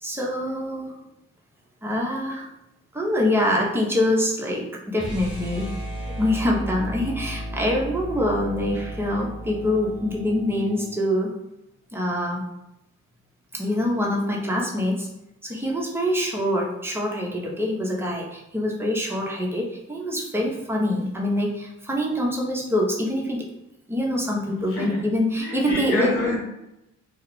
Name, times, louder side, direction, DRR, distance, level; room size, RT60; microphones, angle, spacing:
voice 1, 0.0-0.9 1.8-2.5 2.9-5.7 6.2-11.3 11.9-12.5 13.5-15.1 15.4-23.5 23.9-26.1, left 1 dB, 10° right, -2 dB, 0.7 m, -25 dB
sound 1, 4.9-11.0, equal, 40° left, 1.3 m, -34 dB
voice 2, 24.4-25.0 25.4-26.4, left 2 dB, 90° left, -4 dB, 1.2 m, -28 dB
2.4 x 2.3 x 3.0 m, 0.86 s
cardioid pair, 90°, 30 cm